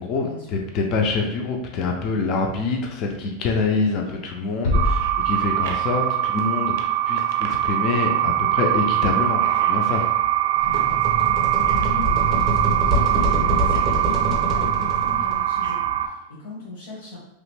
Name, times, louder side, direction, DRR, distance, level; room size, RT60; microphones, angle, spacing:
voice 1, 0.0-10.1, left 4 dB, 35° left, 1 dB, 0.4 m, -25 dB
sound 1, 4.6-6.3, left 1 dB, 60° left, 0.9 m, -25 dB
sound 2, 4.7-16.1, right 12 dB, 65° right, 0.5 m, -22 dB
voice 2, 10.6-17.2, left 3 dB, 75° left, -7 dB, 1.3 m, -38 dB
sound 3, 10.6-15.4, right 1 dB, 20° right, 0.6 m, -25 dB
3.0 x 2.4 x 3.2 m, 0.89 s
supercardioid pair, 160°, 0 cm